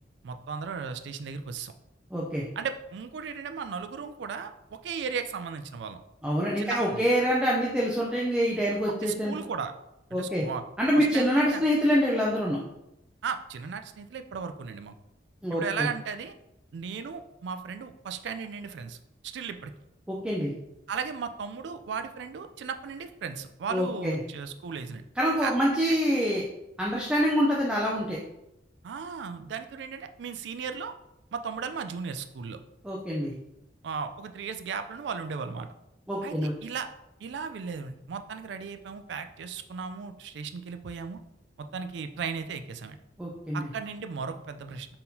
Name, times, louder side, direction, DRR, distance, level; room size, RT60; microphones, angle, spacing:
voice 1, 0.2-1.7 2.6-6.0 6.6-7.1 8.9-9.7 10.1-10.6 11.0-11.6 13.2-15.0 15.5-16.3 16.7-19.0 19.2-19.7 20.9-25.1 25.4-25.5 25.8-26.0 28.8-30.9 31.3-32.6 33.8-35.7 36.2-36.9 37.2-41.2 41.6-43.0 43.5-44.9, right 6 dB, 70° right, 8 dB, 0.3 m, -36 dB
voice 2, 2.1-2.4 6.2-9.4 10.1-10.4 10.8-12.6 15.4-15.9 20.1-20.5 23.7-24.2 25.2-26.4 26.8-28.2 32.8-33.3 36.1-36.5 43.2-43.7, equal, 5° right, -4 dB, 0.4 m, -26 dB
4.4 x 3.6 x 2.7 m, 0.89 s
head